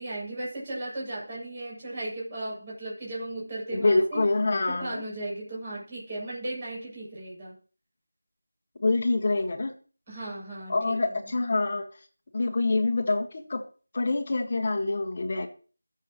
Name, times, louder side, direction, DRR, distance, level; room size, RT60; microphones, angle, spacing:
voice 1, 0.0-4.2 4.7-7.6 10.1-11.3, right 1 dB, 20° right, -6 dB, 7.3 m, -36 dB
voice 2, 3.7-5.0 8.8-9.7 10.7-11.8 12.3-13.6 13.9-15.5, left 2 dB, 30° left, 3 dB, 1.8 m, -26 dB
22.0 x 7.5 x 3.1 m, 0.39 s
figure-of-eight pair, 175°, 0 cm